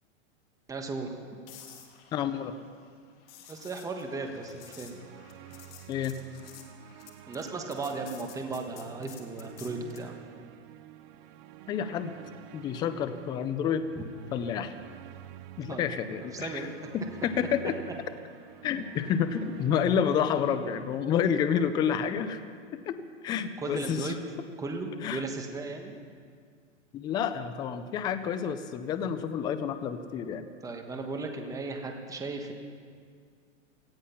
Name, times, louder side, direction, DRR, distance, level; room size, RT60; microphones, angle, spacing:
voice 1, 0.7-1.2 3.5-5.0 7.3-10.1 14.0-14.1 15.7-15.9 16.3-16.8 23.6-24.2 24.6-25.9 30.6-32.5, right 3 dB, 10° right, 3 dB, 1.3 m, -36 dB
sound 1, 1.5-10.1 14.3-14.5, left 9 dB, 50° left, 2.0 m, -52 dB
voice 2, 2.1-2.5 5.9-6.2 11.7-12.1 12.5-13.8 14.3-14.7 15.6-16.7 16.9-17.7 18.6-22.4 22.9-23.0 23.2-24.2 25.0-25.2 26.9-30.5, left 8 dB, 10° left, 11 dB, 0.4 m, -29 dB
sound 2, 4.2-20.7, right 13 dB, 40° right, 0.7 m, -49 dB
17.5 x 14.5 x 5.7 m, 2.1 s
hypercardioid pair, 140°, 37 cm